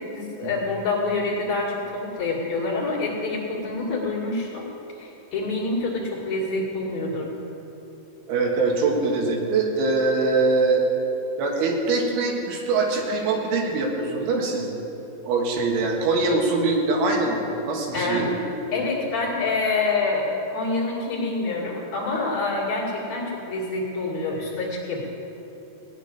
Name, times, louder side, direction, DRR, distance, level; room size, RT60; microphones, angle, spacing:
voice 1, 0.1-4.7 5.0-7.3 17.9-18.3 18.7-25.1, left 3 dB, 45° left, -3 dB, 2.6 m, -27 dB
voice 2, 8.3-10.8 11.4-14.7 15.2-18.3, right 3 dB, 75° right, 0 dB, 4.0 m, -23 dB
18.0 x 6.2 x 10.0 m, 3.0 s
omnidirectional pair, 5.6 m